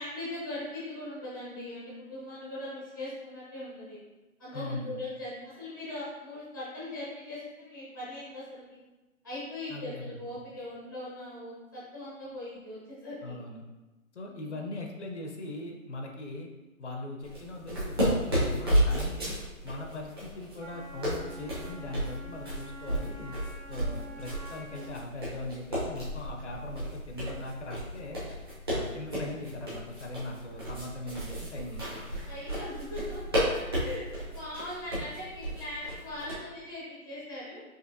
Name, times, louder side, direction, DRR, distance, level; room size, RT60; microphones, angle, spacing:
voice 1, 0.0-4.0 4.4-8.8 9.2-13.3 14.2-14.7 32.2-33.4 33.8-37.6, left 1 dB, 15° left, -8 dB, 0.6 m, -40 dB
voice 2, 4.5-4.9 9.7-10.2 13.2-13.6 14.1-16.5 16.8-19.3 19.6-23.3 23.7-28.2 28.7-32.0, left 2 dB, 55° left, 2 dB, 0.7 m, -40 dB
sound 1, 17.2-36.3, equal, 20° right, 0.8 m, -33 dB
Wind instrument woodwind instrument, 20.6-25.1, right 1 dB, 65° right, 1.0 m, -47 dB
5.1 x 2.9 x 2.6 m, 1.1 s
hypercardioid pair, 170°, 42 cm